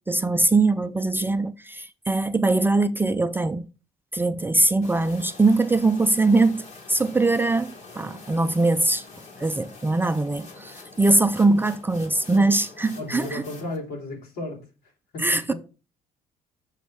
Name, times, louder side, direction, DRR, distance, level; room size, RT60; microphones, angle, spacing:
voice 1, 0.1-3.7 4.1-9.0 9.4-13.4 15.2-15.5, right 2 dB, 10° right, 0.5 m, -22 dB
sound 1, 4.8-13.8, left 3 dB, 45° left, 2.3 m, -45 dB
voice 2, 13.0-14.6 15.1-15.5, left 2 dB, 75° left, 3.6 m, -34 dB
6.4 x 5.1 x 6.2 m
cardioid pair, 110°, 17 cm